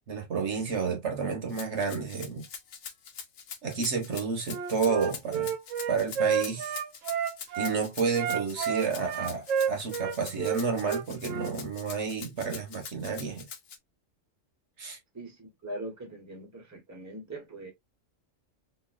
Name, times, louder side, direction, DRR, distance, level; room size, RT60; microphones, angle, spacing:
voice 1, 0.1-2.5 3.6-5.5 5.9-6.8 7.6-13.5 14.8-15.0, right 5 dB, 60° right, 1.3 m, -30 dB
Rattle (instrument), 1.5-13.8, left 7 dB, 85° left, 1.2 m, -43 dB
Wind instrument woodwind instrument, 4.5-7.7 8.1-11.5, right 7 dB, 80° right, 1.0 m, -30 dB
voice 2, 15.1-17.7, right 1 dB, 15° right, 0.9 m, -41 dB
4.2 x 2.7 x 2.4 m
omnidirectional pair, 1.4 m